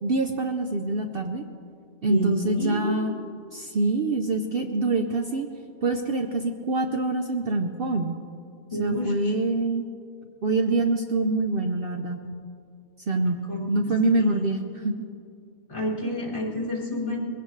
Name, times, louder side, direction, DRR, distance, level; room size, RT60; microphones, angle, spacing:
voice 1, 0.0-1.5 2.0-3.1 3.5-5.5 5.8-8.2 8.8-9.9 10.4-12.3 13.1-13.4 13.7-15.1, right 2 dB, 50° right, 4 dB, 0.9 m, -25 dB
voice 2, 2.1-3.1 8.7-9.3 13.4-14.6 15.7-17.2, equal, 40° left, -2 dB, 2.8 m, -30 dB
22.0 x 16.5 x 3.2 m, 2.4 s
omnidirectional pair, 1.3 m